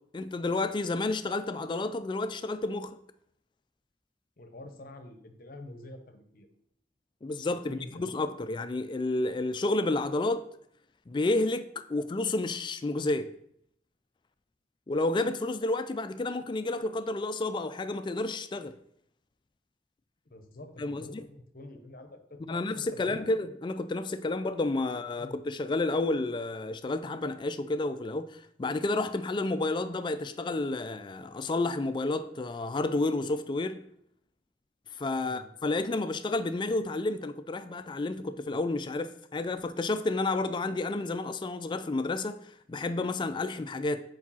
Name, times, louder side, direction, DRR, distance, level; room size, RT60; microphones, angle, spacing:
voice 1, 0.1-3.0 7.2-10.4 11.1-13.3 14.9-18.7 20.8-21.2 22.5-33.8 35.0-44.0, left 2 dB, 25° left, 0.3 m, -30 dB
voice 2, 4.4-6.5 7.6-8.1 20.3-23.3 24.8-24.9 25.2-25.4 35.2-35.4, left 1 dB, 50° left, 0.8 m, -47 dB
4.9 x 4.7 x 5.5 m
head